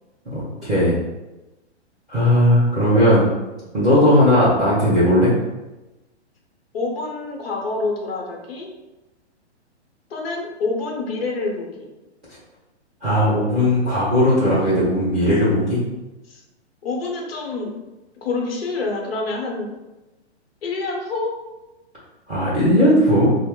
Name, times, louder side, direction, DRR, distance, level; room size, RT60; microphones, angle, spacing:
voice 1, 0.2-1.0 2.1-3.2 3.7-5.3 13.0-15.8 22.3-23.3, equal, 10° right, -17 dB, 0.4 m, -17 dB
voice 2, 6.7-8.7 10.1-11.9 16.3-16.4 16.8-17.7 18.2-19.7 20.6-21.3, left 3 dB, 60° left, 0 dB, 0.9 m, -27 dB
3.0 x 2.1 x 3.7 m, 1.1 s
hypercardioid pair, 165°, 34 cm